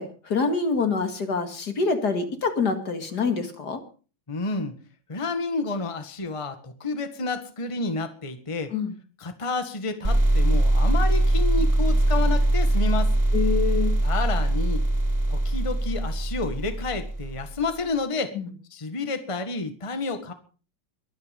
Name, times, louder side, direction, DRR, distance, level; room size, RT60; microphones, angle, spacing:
voice 1, 0.0-3.8 8.7-8.9 13.3-13.9 18.3-18.5, left 4 dB, 55° left, 7 dB, 2.5 m, -26 dB
voice 2, 4.3-4.7 5.1-8.7 9.2-13.1 14.0-14.8 15.3-18.3 18.7-20.3, left 3 dB, 15° left, 8 dB, 1.6 m, -30 dB
sound 1, 10.0-17.6, right 1 dB, 20° right, 3.7 m, -22 dB
23.0 x 9.7 x 5.3 m, 0.38 s
omnidirectional pair, 2.2 m